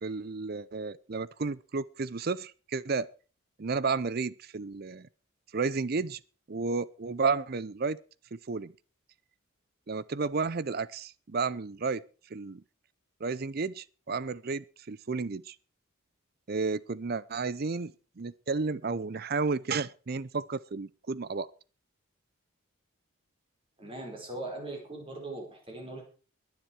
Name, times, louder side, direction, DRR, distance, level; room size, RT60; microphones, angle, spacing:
voice 1, 0.0-3.1 3.6-5.1 5.5-6.2 6.5-8.0 8.3-8.7 9.9-12.0 12.3-12.6 13.2-15.6 16.5-21.5, right 4 dB, 45° right, 0.5 m, -32 dB
voice 2, 23.8-26.0, right 2 dB, 25° right, 4.9 m, -40 dB
21.5 x 7.5 x 4.7 m
head